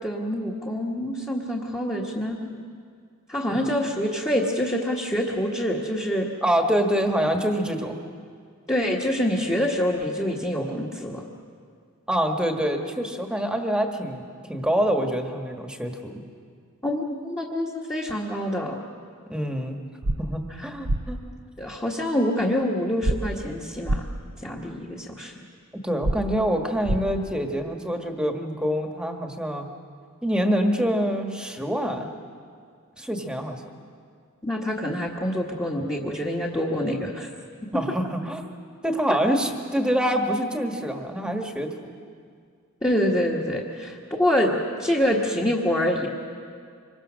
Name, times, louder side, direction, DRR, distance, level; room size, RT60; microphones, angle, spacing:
voice 1, 0.0-2.5 3.3-6.3 8.7-11.2 16.8-18.8 21.6-24.1 24.4-25.3 34.4-37.3 42.8-44.5 44.8-46.1, equal, 15° left, -4 dB, 1.6 m, -26 dB
voice 2, 6.4-8.0 12.1-16.2 19.3-19.8 20.2-21.2 25.7-29.7 30.2-32.1 33.0-33.6 37.7-38.4 38.8-41.7, equal, 5° right, 3 dB, 1.5 m, -26 dB
sound 1, 20.0-20.2 20.8-21.0 23.0-23.2 23.8-24.0 26.0-26.2 26.8-27.0, right 1 dB, 85° right, 1.0 m, -23 dB
26.0 x 23.0 x 6.4 m, 2.1 s
head